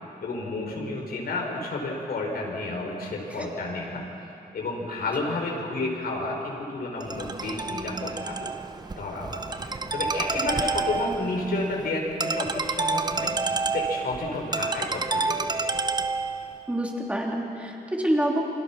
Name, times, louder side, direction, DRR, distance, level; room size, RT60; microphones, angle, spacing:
voice 1, 0.2-4.0 4.5-8.5 9.0-13.3 13.7-15.5, left 2 dB, 75° left, 0 dB, 5.4 m, -31 dB
Ringtone, 7.0-16.6, right 4 dB, 25° right, 0.9 m, -29 dB
voice 2, 16.7-18.4, right 1 dB, 10° right, -1 dB, 3.3 m, -27 dB
28.5 x 26.0 x 6.1 m, 2.7 s
wide cardioid pair, 145°, 16 cm